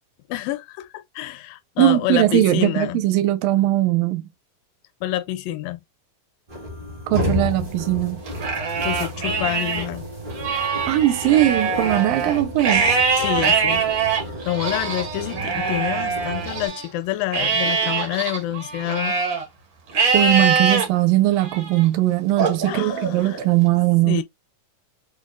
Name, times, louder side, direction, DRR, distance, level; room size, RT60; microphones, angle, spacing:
voice 1, 0.3-3.0 5.0-5.8 8.8-10.0 13.2-13.8 14.5-19.2 22.6-23.4 24.1-24.2, left 15 dB, 85° left, 2.3 m, -27 dB
voice 2, 1.8-4.3 7.1-8.2 10.9-12.9 20.1-24.2, right 15 dB, 85° right, 2.2 m, -19 dB
sound 1, 6.5-16.7, left 1 dB, 45° right, 0.6 m, -32 dB
Livestock farm animals working animals, 8.3-9.8 10.3-16.8 17.3-19.4 19.9-20.8 21.4-21.8 22.4-23.5, right 5 dB, 65° right, 1.1 m, -23 dB
6.4 x 2.3 x 2.3 m
omnidirectional pair, 4.0 m